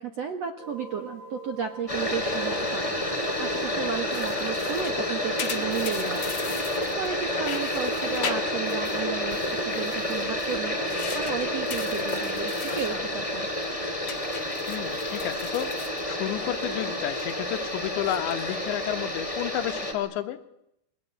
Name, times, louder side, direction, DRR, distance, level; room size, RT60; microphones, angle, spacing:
voice 1, 0.0-6.4 7.0-13.5, right 7 dB, 70° right, 6 dB, 1.6 m, -34 dB
sound 1, 0.6-17.2, right 3 dB, 85° right, 7.7 m, -45 dB
sound 2, 1.9-19.9, left 1 dB, 10° left, 3.9 m, -29 dB
sound 3, 4.1-7.1 7.4-9.0 9.3-13.0 13.3-13.6 14.1-16.6 16.9-17.3 17.9-18.5, left 7 dB, 50° left, 2.0 m, -40 dB
voice 2, 14.7-15.7 16.1-20.4, left 13 dB, 85° left, 8 dB, 3.7 m, -31 dB
29.0 x 22.5 x 8.9 m, 0.81 s
omnidirectional pair, 5.1 m